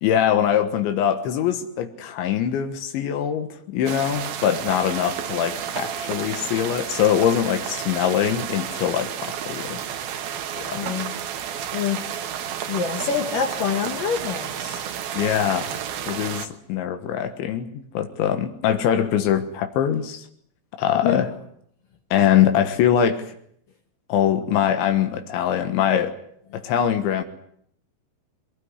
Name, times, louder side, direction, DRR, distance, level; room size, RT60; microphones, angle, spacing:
voice 1, 0.0-9.8 10.6-10.8 15.1-15.8 16.1-20.3 20.8-21.3 22.1-23.3 24.1-26.2 26.5-27.2, left 9 dB, 80° left, 7 dB, 3.8 m, -23 dB
sound 1, 3.9-16.5, right 9 dB, 65° right, 3.1 m, -31 dB
voice 2, 10.4-11.1 11.7-14.8 21.0-21.2, left 7 dB, 60° left, 4 dB, 2.7 m, -27 dB
23.0 x 18.5 x 9.8 m, 0.68 s
omnidirectional pair, 5.2 m